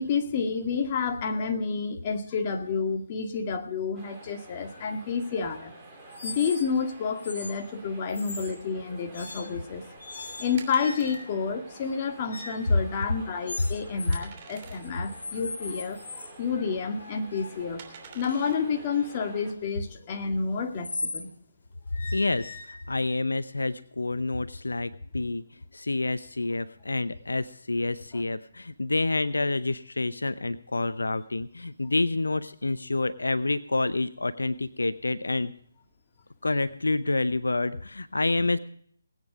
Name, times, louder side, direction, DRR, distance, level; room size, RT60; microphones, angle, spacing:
voice 1, 0.0-5.7 6.2-9.9 10.4-17.8 18.1-21.3 28.1-28.2, left 5 dB, 30° left, 4 dB, 1.9 m, -30 dB
sound 1, 3.9-19.5, right 2 dB, 10° right, 3.8 m, -50 dB
sound 2, 6.1-6.8 7.2-7.5 8.1-8.6 9.1-9.6 10.0-11.4 12.3-12.7 13.5-14.2 14.5-16.3 16.9-21.3 21.9-23.1, left 3 dB, 70° left, 3.3 m, -40 dB
sound 3, 9.3-19.9, right 7 dB, 35° right, 3.1 m, -51 dB
voice 2, 22.1-25.4 25.7-35.5 36.4-38.6, left 2 dB, 85° left, 14 dB, 0.7 m, -28 dB
20.0 x 9.2 x 4.9 m, 0.62 s
figure-of-eight pair, 150°, 0 cm